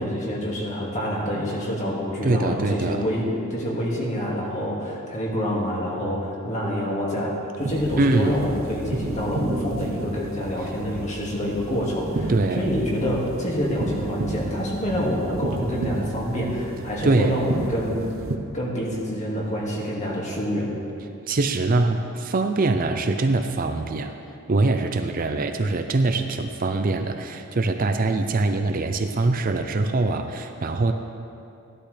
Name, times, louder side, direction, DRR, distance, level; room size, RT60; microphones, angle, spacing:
voice 1, 0.0-18.1 18.5-20.7, equal, 35° left, -4 dB, 2.1 m, -27 dB
voice 2, 2.2-3.0 8.0-8.3 12.3-12.6 17.0-17.4 21.3-24.1 24.5-30.9, right 3 dB, 40° right, 6 dB, 0.5 m, -23 dB
sound 1, 7.6-18.4, right 2 dB, 65° right, 0.9 m, -32 dB
15.5 x 11.5 x 3.3 m, 2.7 s
head